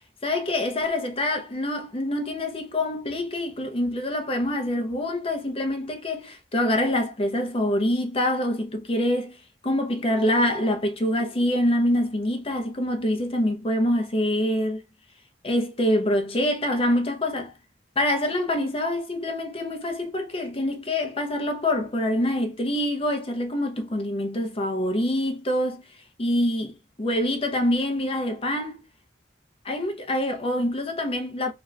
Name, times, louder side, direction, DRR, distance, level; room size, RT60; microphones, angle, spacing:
voice 1, 0.2-9.4 9.6-14.8 15.4-17.5 18.0-25.8 26.2-28.8 29.6-31.5, left 1 dB, 30° left, 0.7 m, -25 dB
2.9 x 2.5 x 3.2 m
head